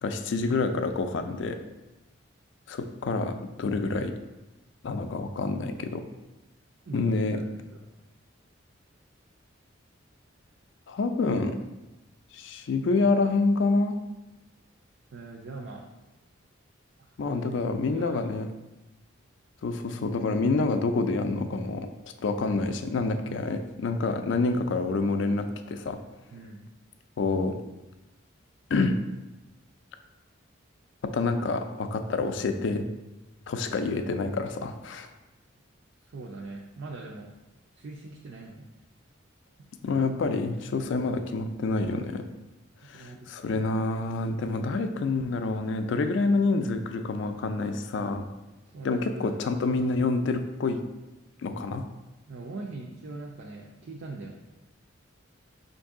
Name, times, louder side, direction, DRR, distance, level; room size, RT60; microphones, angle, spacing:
voice 1, 0.0-1.6 2.7-4.1 4.8-6.0 6.9-7.4 10.9-11.6 12.3-14.0 17.2-18.5 19.6-21.9 22.2-26.0 27.2-27.6 28.7-29.0 31.1-32.9 33.5-35.1 39.8-42.3 42.8-48.3 48.8-50.8 51.4-51.9, left 3 dB, 60° left, 8 dB, 0.4 m, -27 dB
voice 2, 6.9-7.4 7.7-7.8 15.1-15.8 17.0-17.4 17.9-18.2 26.3-26.7 36.0-37.3 37.8-38.7 42.8-43.6 48.7-49.4 52.3-54.3, right 3 dB, 65° right, -1 dB, 0.4 m, -41 dB
5.3 x 2.6 x 3.6 m, 1.0 s
head